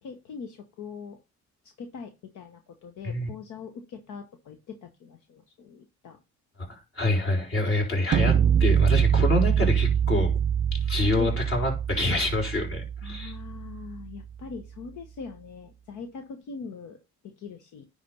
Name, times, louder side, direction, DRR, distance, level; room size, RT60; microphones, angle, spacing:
voice 1, 0.0-1.2 1.8-6.2 11.2-11.3 13.0-17.0 17.4-17.8, left 5 dB, 80° left, 1.1 m, -41 dB
voice 2, 6.7-10.4 10.9-13.3, left 2 dB, 45° left, 4.3 m, -27 dB
sound 1, 8.1-14.1, right 8 dB, 40° right, 0.4 m, -24 dB
10.0 x 3.4 x 5.5 m
cardioid pair, 90°, 30 cm